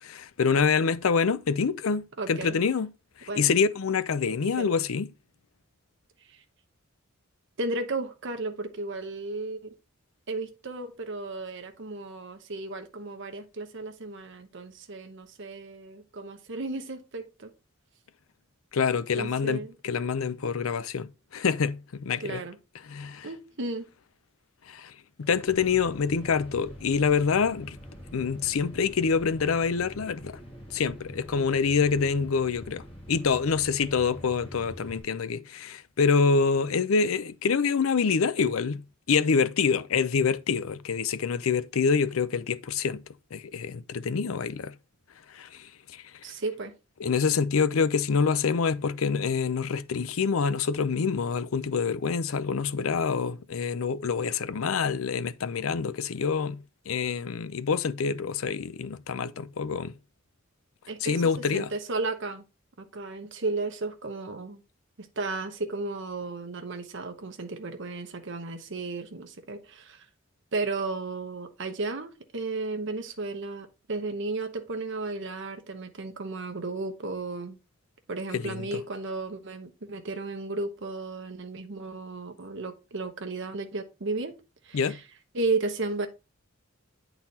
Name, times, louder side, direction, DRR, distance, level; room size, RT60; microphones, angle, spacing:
voice 1, 0.0-2.9 3.2-5.1 18.7-22.4 22.8-23.3 24.7-27.8 28.1-30.4 30.7-43.0 43.3-44.7 45.3-46.2 47.0-59.9 61.0-61.7 78.3-78.8 84.7-85.0, left 5 dB, 90° left, 0.5 m, -26 dB
voice 2, 2.2-2.6 3.3-3.5 4.6-4.7 6.3-6.4 7.6-9.8 10.3-17.5 19.2-19.7 22.2-22.6 23.2-23.9 46.2-46.7 60.9-61.2 61.5-62.4 62.8-64.6 65.0-70.1 70.5-77.6 78.1-84.3 84.6-85.0 85.3-86.1, right 3 dB, 60° right, 0.9 m, -34 dB
sound 1, 25.2-35.0, equal, 25° left, 2.3 m, -45 dB
8.8 x 4.0 x 4.0 m
head